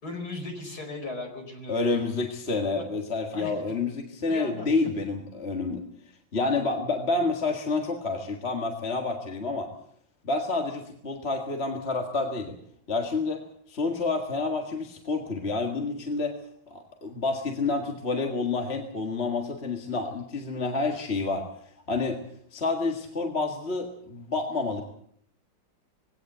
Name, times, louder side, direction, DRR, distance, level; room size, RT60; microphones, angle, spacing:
voice 1, 0.0-2.0 2.8-2.9 3.3-3.5 4.3-4.7, left 2 dB, 50° left, 4 dB, 5.3 m, -37 dB
voice 2, 1.7-5.8 6.3-9.7 10.2-12.6 12.9-13.4 13.7-16.4 16.7-21.5 21.9-22.2 22.5-24.8, left 3 dB, 35° left, 3 dB, 2.0 m, -29 dB
21.0 x 17.0 x 8.0 m, 0.67 s
omnidirectional pair, 2.1 m